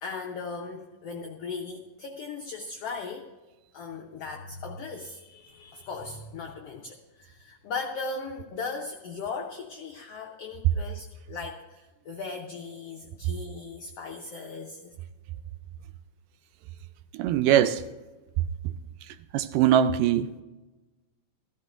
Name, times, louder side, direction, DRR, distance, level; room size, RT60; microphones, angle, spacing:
voice 1, 0.0-3.3 3.7-14.9, left 4 dB, 75° left, 1.4 m, -38 dB
voice 2, 17.1-17.8 19.3-20.4, right 10 dB, 85° right, 2.1 m, -22 dB
15.5 x 14.0 x 2.5 m
omnidirectional pair, 3.8 m